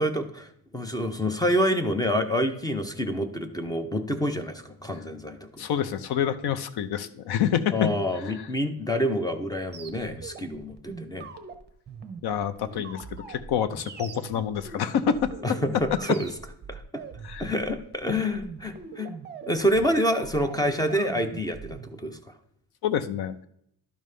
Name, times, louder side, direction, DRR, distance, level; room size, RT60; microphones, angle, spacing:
voice 1, 0.0-5.6 7.7-11.3 15.4-16.3 16.7-17.0 17.4-19.1 19.5-22.3, equal, 10° left, 8 dB, 0.5 m, -27 dB
voice 2, 5.6-7.9 8.4-8.5 12.2-15.3 15.9-16.0 17.2-17.5 22.8-23.5, left 8 dB, 60° left, 13 dB, 0.7 m, -27 dB
sound 1, 9.7-21.9, right 5 dB, 25° right, 0.7 m, -42 dB
12.0 x 5.3 x 3.2 m, 0.70 s
cardioid pair, 160°, 44 cm